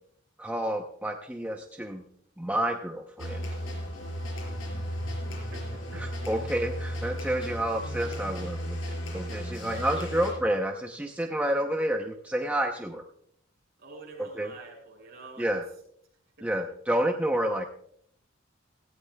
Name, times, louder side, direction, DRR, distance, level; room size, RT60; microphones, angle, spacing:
voice 1, 0.4-2.0 2.4-3.4 6.0-8.8 9.1-13.0 14.2-14.5 15.4-15.6 16.4-17.7, right 1 dB, 5° right, 3 dB, 0.7 m, -29 dB
sound 1, 3.2-10.3, equal, 85° left, 5.1 m, -35 dB
voice 2, 5.3-6.1 9.7-10.4 13.8-15.5, right 2 dB, 50° right, -1 dB, 6.0 m, -46 dB
17.0 x 15.5 x 2.3 m, 0.67 s
head